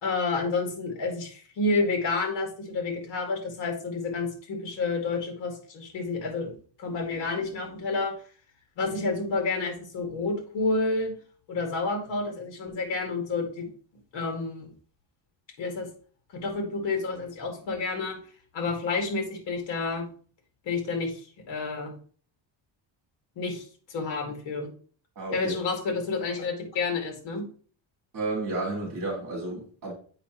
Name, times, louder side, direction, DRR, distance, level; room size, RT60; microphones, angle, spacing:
voice 1, 0.0-6.5 6.8-8.1 8.8-11.1 11.5-13.7 14.1-14.7 15.6-15.9 16.3-18.2 18.5-20.1 20.7-21.9 23.4-24.7 25.3-27.5, left 3 dB, 65° left, 2.1 m, -29 dB
voice 2, 25.1-25.6 28.1-29.9, right 2 dB, 45° right, 3.0 m, -32 dB
8.0 x 5.1 x 3.0 m
cardioid pair, 180°, 47 cm